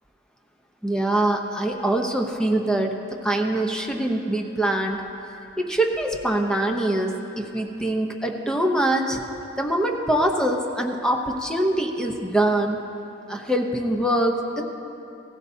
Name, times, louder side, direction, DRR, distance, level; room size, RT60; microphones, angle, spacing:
voice 1, 0.8-3.0 3.2-5.0 5.6-9.2 9.6-12.8 13.3-14.6, right 1 dB, 5° left, 2 dB, 0.8 m, -23 dB
16.5 x 15.0 x 2.7 m, 2.8 s
head